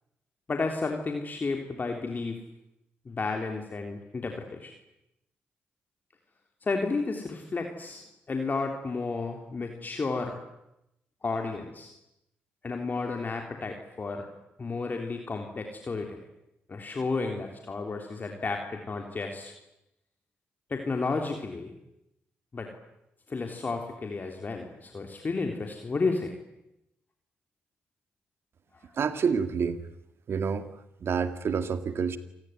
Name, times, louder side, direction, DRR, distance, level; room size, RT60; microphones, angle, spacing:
voice 1, 0.5-2.4 3.1-4.7 6.6-10.4 11.2-11.9 12.6-14.3 14.6-16.2 16.7-19.5 20.7-21.7 22.5-22.7 23.3-26.3, left 3 dB, 40° left, 3 dB, 3.5 m, -32 dB
voice 2, 29.0-29.8 30.3-30.7 31.0-32.2, right 6 dB, 60° right, 11 dB, 2.1 m, -28 dB
28.0 x 19.5 x 9.5 m, 0.85 s
supercardioid pair, 55°, 5 cm